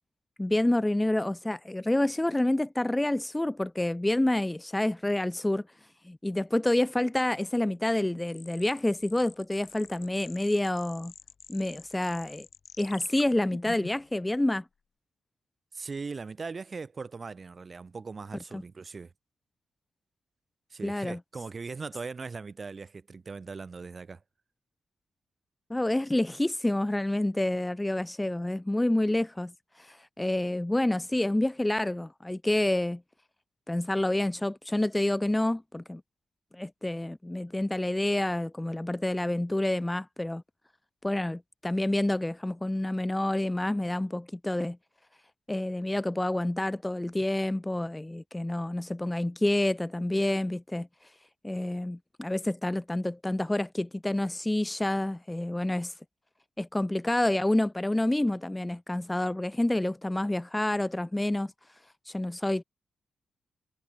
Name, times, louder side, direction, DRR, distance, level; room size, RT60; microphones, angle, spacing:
voice 1, 0.4-5.6 6.0-11.1 11.5-12.5 12.8-14.7 18.5-18.6 20.8-21.2 25.7-33.0 33.7-36.0 36.5-40.4 41.0-44.8 45.5-51.1 51.4-55.9 56.6-61.5 62.1-62.6, left 1 dB, 10° left, 0.3 m, -28 dB
sound 1, 8.3-14.1, left 6 dB, 55° left, 3.0 m, -48 dB
voice 2, 15.7-19.1 20.7-24.2, right 4 dB, 40° right, 3.7 m, -39 dB
cardioid pair, 75°, 0 cm